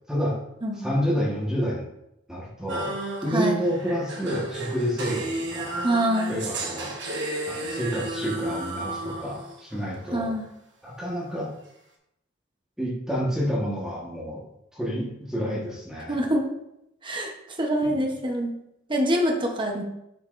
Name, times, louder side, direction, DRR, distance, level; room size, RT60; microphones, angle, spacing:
voice 1, 0.8-1.8 2.3-2.9 3.2-5.8 6.3-6.9 7.5-10.3 10.8-11.5 12.8-14.4 14.7-16.2 17.8-18.0, equal, 5° right, -5 dB, 1.3 m, -29 dB
sound 1, 2.7-9.9, right 2 dB, 65° right, 1.2 m, -33 dB
voice 2, 5.8-6.4 10.1-10.4 16.1-16.5 17.0-17.3 17.6-18.5 18.9-19.8, right 1 dB, 25° right, 1 dB, 0.9 m, -25 dB
7.5 x 6.3 x 2.6 m, 0.82 s
head